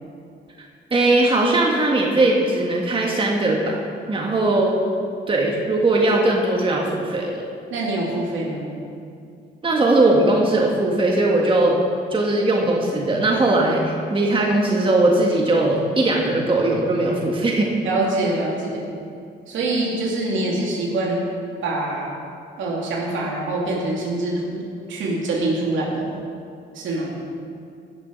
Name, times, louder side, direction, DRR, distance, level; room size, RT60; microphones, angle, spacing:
voice 1, 0.9-3.8 4.1-4.8 5.3-7.4 9.6-11.8 12.1-17.7, right 2 dB, 25° right, -1 dB, 1.7 m, -19 dB
voice 2, 7.7-8.7 17.8-18.8 19.5-21.2 21.6-22.1 22.6-24.6 24.9-26.1 26.7-27.1, right 2 dB, 75° right, -3 dB, 2.8 m, -24 dB
15.5 x 6.9 x 5.3 m, 2.4 s
cardioid pair, 90°, 20 cm